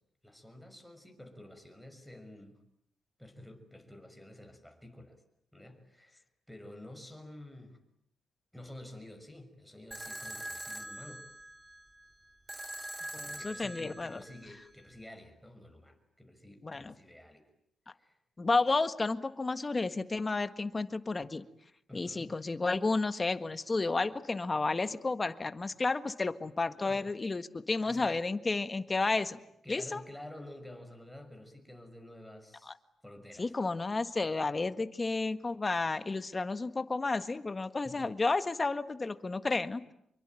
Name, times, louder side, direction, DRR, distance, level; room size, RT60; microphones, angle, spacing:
voice 1, 0.2-2.6 3.2-5.2 5.5-7.8 8.5-11.3 13.2-17.4 18.0-18.2 21.9-22.3 26.7-27.1 27.8-28.2 29.6-32.7 33.0-33.5 37.8-38.1, left 1 dB, ahead, 5 dB, 6.3 m, -50 dB
sound 1, 9.9-14.9, right 1 dB, 15° right, 2.7 m, -44 dB
voice 2, 13.1-14.2 16.6-16.9 18.4-21.4 21.9-29.4 29.7-30.0 32.7-32.8 33.4-39.8, left 3 dB, 30° left, 11 dB, 1.6 m, -32 dB
27.0 x 23.5 x 9.2 m, 0.74 s
cardioid pair, 95°, 0 cm